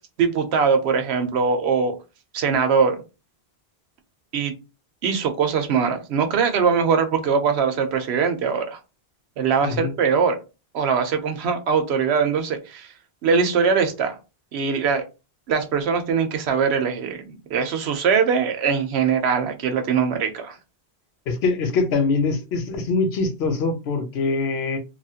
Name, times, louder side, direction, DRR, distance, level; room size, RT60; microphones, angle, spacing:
voice 1, 0.2-1.9 2.3-3.0 4.3-4.5 5.0-8.8 9.4-10.4 10.7-12.9 13.2-14.2 14.5-15.0 15.5-20.6, right 6 dB, 85° right, 0.9 m, -21 dB
voice 2, 9.6-9.9 21.3-24.8, left 4 dB, 80° left, 0.9 m, -23 dB
2.9 x 2.4 x 2.7 m
omnidirectional pair, 1.1 m